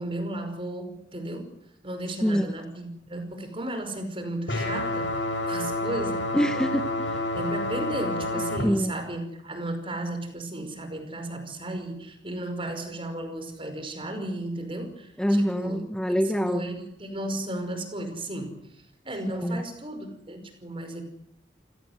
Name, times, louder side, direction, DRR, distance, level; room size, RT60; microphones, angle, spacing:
voice 1, 0.0-1.5 1.8-6.4 7.3-15.8 16.2-21.0, right 1 dB, 30° right, 7 dB, 5.4 m, -34 dB
sound 1, 4.5-8.6, left 1 dB, 75° left, 8.0 m, -29 dB
voice 2, 6.3-7.3 8.6-8.9 15.2-16.7 19.3-19.6, equal, 5° left, 9 dB, 0.9 m, -25 dB
28.5 x 17.5 x 8.1 m, 0.76 s
head